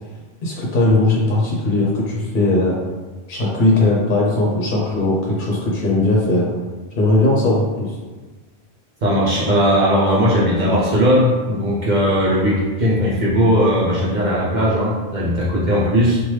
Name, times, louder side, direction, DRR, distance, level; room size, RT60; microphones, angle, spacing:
voice 1, 0.4-2.8 3.3-6.5 7.0-7.9, left 2 dB, 60° left, -4 dB, 0.7 m, -18 dB
voice 2, 9.0-16.2, equal, 55° right, -7 dB, 0.6 m, -18 dB
3.1 x 2.2 x 3.1 m, 1.3 s
omnidirectional pair, 1.0 m